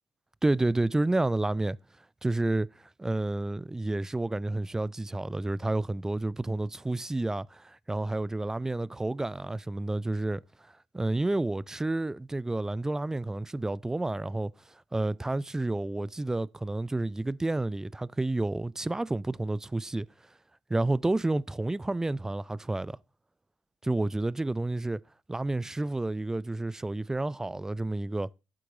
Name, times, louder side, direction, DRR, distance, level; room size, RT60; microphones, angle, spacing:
voice 1, 0.4-1.8 2.2-2.7 3.0-10.4 10.9-14.5 14.9-20.1 20.7-23.0 23.8-25.0 25.3-28.3, right 2 dB, 10° right, 0.4 m, -30 dB
11.5 x 7.6 x 3.8 m
figure-of-eight pair, 50°, 4 cm